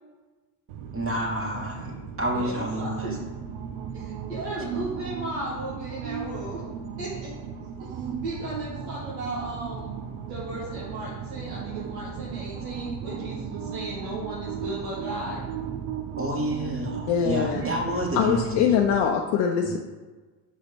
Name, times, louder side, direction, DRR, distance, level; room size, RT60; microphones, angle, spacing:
sound 1, 0.7-19.0, right 7 dB, 65° right, 0.9 m, -36 dB
voice 1, 0.9-3.2 16.2-18.7 19.6-19.8, right 1 dB, 25° right, -1 dB, 2.3 m, -29 dB
voice 2, 2.4-3.1 3.9-6.6 7.0-7.3 7.8-15.4 17.5-17.7, right 2 dB, 85° right, -7 dB, 1.9 m, -35 dB
voice 3, 17.1-17.6 18.1-19.8, left 7 dB, 75° left, 1 dB, 0.8 m, -23 dB
6.6 x 4.2 x 5.2 m, 1.3 s
hypercardioid pair, 65°, 50 cm